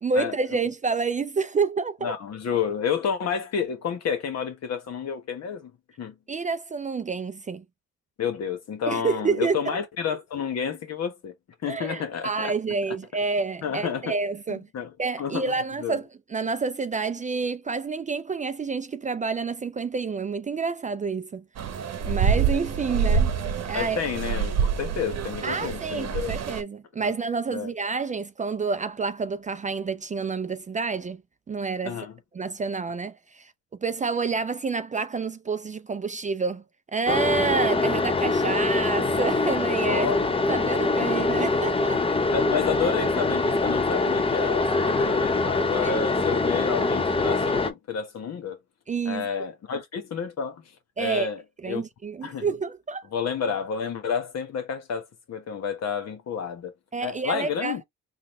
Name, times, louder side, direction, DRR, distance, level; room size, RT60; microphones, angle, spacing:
voice 1, 0.0-2.1 6.3-7.6 8.9-9.8 11.7-14.7 15.0-21.4 22.0-23.3 23.7-24.0 25.4-31.2 31.5-32.0 32.3-33.5 33.8-36.6 36.9-40.1 40.5-42.0 45.8-46.0 48.9-49.3 51.0-51.3 51.6-53.0 56.9-57.8, right 4 dB, 25° right, 0.4 m, -28 dB
voice 2, 2.0-5.7 6.0-6.1 8.2-11.3 11.6-12.5 13.6-14.2 14.5-16.0 22.1-22.2 23.7-26.3 27.0-27.1 27.5-27.7 31.8-32.1 39.9-40.2 41.0-41.2 42.3-48.6 49.0-50.6 51.0-51.8 52.2-52.5 53.1-56.7 57.0-57.8, left 7 dB, 60° left, 1.2 m, -30 dB
sound 1, 21.6-26.6, right 6 dB, 55° right, 0.9 m, -26 dB
sound 2, 37.1-47.7, left 3 dB, 20° left, 0.6 m, -24 dB
3.9 x 2.4 x 3.1 m
cardioid pair, 90°, 30 cm